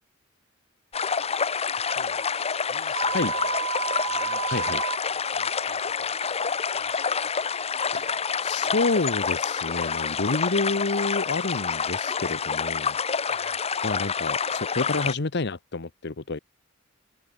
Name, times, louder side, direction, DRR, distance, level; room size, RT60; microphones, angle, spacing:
sound 1, 0.9-15.1, left 6 dB, 30° left, 0.9 m, -28 dB
voice 1, 1.7-2.2 2.7-3.7 4.1-7.3 13.3-13.6, left 4 dB, 75° left, 6.6 m, -47 dB
sound 2, 3.0-5.0, right 6 dB, 70° right, 0.7 m, -30 dB
voice 2, 7.9-13.0 13.3-16.4, left 3 dB, 55° left, 1.0 m, -29 dB
head